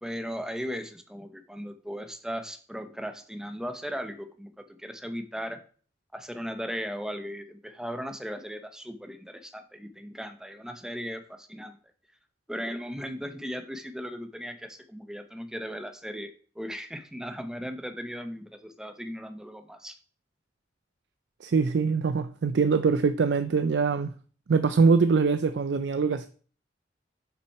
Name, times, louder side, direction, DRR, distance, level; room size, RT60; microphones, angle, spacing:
voice 1, 0.0-5.6 6.1-11.8 12.5-20.0, equal, 5° right, 0.8 m, -37 dB
voice 2, 21.4-24.1 24.5-26.3, right 5 dB, 85° right, 0.4 m, -23 dB
7.2 x 5.9 x 4.6 m
head